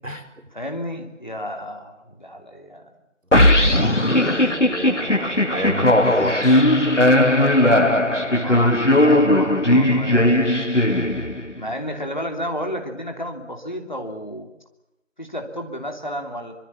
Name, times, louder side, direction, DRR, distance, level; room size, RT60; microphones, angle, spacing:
voice 1, 0.5-2.9 4.9-5.5 8.3-10.5 11.5-14.5 15.2-16.5, equal, 35° left, 3 dB, 3.0 m, -32 dB
sound 1, 3.3-11.6, left 1 dB, 65° left, 2.3 m, -17 dB
voice 2, 3.4-6.6, equal, 80° right, 9 dB, 4.6 m, -31 dB
25.0 x 24.5 x 7.3 m, 0.92 s
figure-of-eight pair, 180°, 38 cm